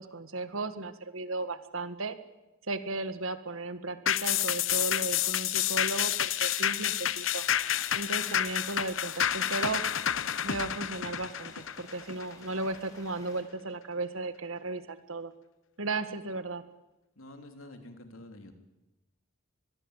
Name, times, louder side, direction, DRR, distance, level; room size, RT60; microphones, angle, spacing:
voice 1, 0.0-2.2 2.7-7.4 7.9-9.8 10.4-15.3 15.8-16.6, right 2 dB, 85° right, 11 dB, 1.8 m, -35 dB
sound 1, 4.1-12.8 13.2-13.3, left 10 dB, 70° left, 0.8 m, -29 dB
sound 2, 7.2-13.4, left 1 dB, 15° left, 6.4 m, -55 dB
voice 2, 17.2-18.5, left 1 dB, 85° left, 6 dB, 3.4 m, -48 dB
24.0 x 22.0 x 8.3 m, 1.0 s
head